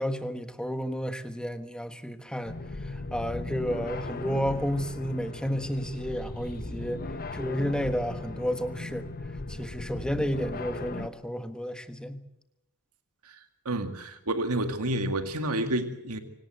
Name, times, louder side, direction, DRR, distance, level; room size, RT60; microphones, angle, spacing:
voice 1, 0.0-2.5 2.8-7.0 7.3-9.1 9.5-12.2, equal, 5° left, 9 dB, 1.4 m, -31 dB
sound 1, 2.4-11.1, left 2 dB, 45° left, 1.1 m, -37 dB
voice 2, 13.7-16.2, right 1 dB, 90° right, 8 dB, 2.1 m, -29 dB
26.0 x 18.0 x 8.0 m, 0.88 s
head